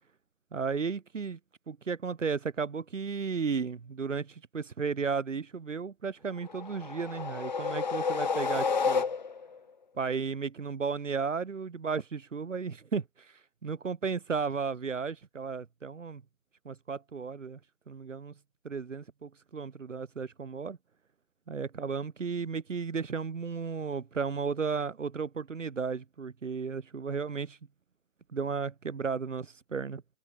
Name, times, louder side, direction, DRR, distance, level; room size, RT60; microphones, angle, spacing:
voice 1, 0.5-1.4 1.7-9.0 10.0-16.2 16.6-17.6 17.9-18.3 18.6-20.8 21.5-27.6 28.3-30.0, right 5 dB, 80° right, 1.4 m, -34 dB
sound 1, 6.5-9.6, left 5 dB, 35° left, 1.9 m, -30 dB
hypercardioid pair, 175°, 37 cm